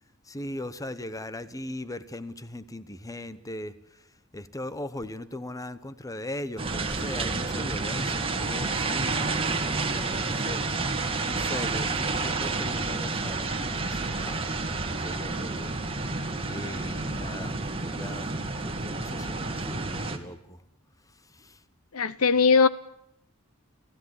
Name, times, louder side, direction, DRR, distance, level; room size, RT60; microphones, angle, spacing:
voice 1, 0.2-15.7 16.5-20.6 21.0-21.6, left 1 dB, 15° left, 1.1 m, -39 dB
sound 1, 6.6-20.2, right 3 dB, 25° right, 2.3 m, -30 dB
voice 2, 21.9-22.7, left 5 dB, 75° left, 1.1 m, -20 dB
30.0 x 16.5 x 9.9 m
head